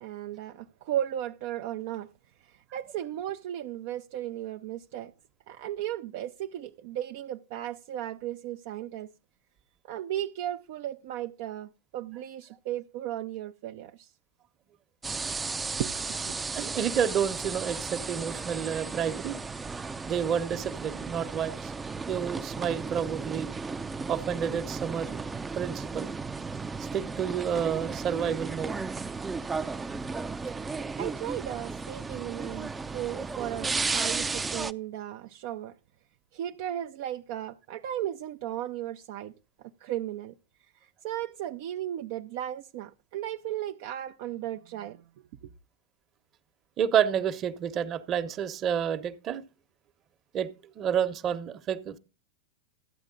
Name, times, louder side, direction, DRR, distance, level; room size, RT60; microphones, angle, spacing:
voice 1, 0.0-2.1 2.7-5.1 5.5-9.1 9.9-14.1 15.8-16.4 31.0-35.7 36.3-39.3 39.8-40.3 41.0-45.0 45.4-45.5, right 12 dB, 60° right, 0.6 m, -35 dB
sound 1, 15.0-34.7, right 4 dB, 15° right, 0.5 m, -34 dB
voice 2, 16.5-19.4 20.0-21.7 22.1-23.5 24.1-25.2 25.5-26.1 26.8-28.7 46.8-49.4 50.3-52.0, right 8 dB, 35° right, 1.1 m, -29 dB
13.0 x 8.9 x 3.8 m
hypercardioid pair, 105°, 0 cm